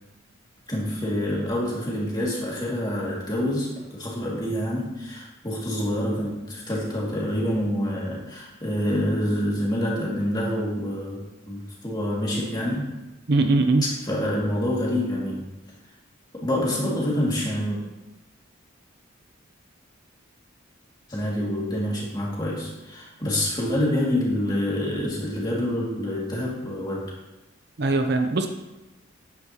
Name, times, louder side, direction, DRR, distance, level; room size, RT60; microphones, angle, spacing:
voice 1, 0.7-12.9 13.8-15.5 16.3-17.8 21.1-27.1, left 1 dB, 20° left, -4 dB, 2.3 m, -27 dB
voice 2, 13.3-13.8 27.8-28.5, right 3 dB, 50° right, 6 dB, 0.6 m, -21 dB
10.0 x 9.5 x 3.0 m, 1.1 s
head